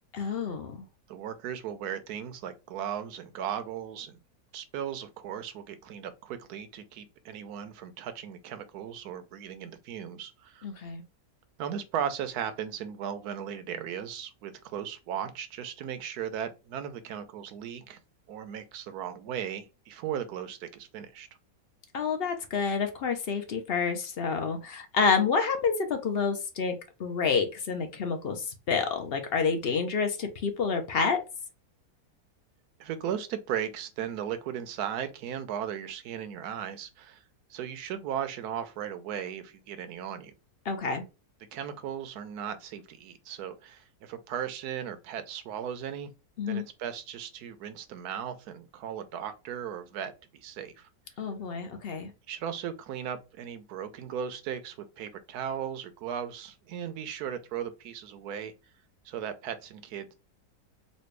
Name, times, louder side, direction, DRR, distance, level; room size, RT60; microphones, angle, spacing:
voice 1, 0.1-0.8 10.6-11.0 21.9-26.7 27.0-31.2 40.7-41.0 46.4-46.7 51.2-52.1, left 5 dB, 55° left, 0.7 m, -28 dB
voice 2, 1.1-4.2 4.5-10.7 11.6-18.0 18.3-21.3 32.8-37.2 37.5-40.3 41.5-46.1 46.5-50.9 52.3-58.5 59.0-60.1, right 9 dB, 75° right, 1.1 m, -37 dB
4.2 x 2.3 x 3.2 m
omnidirectional pair, 1.7 m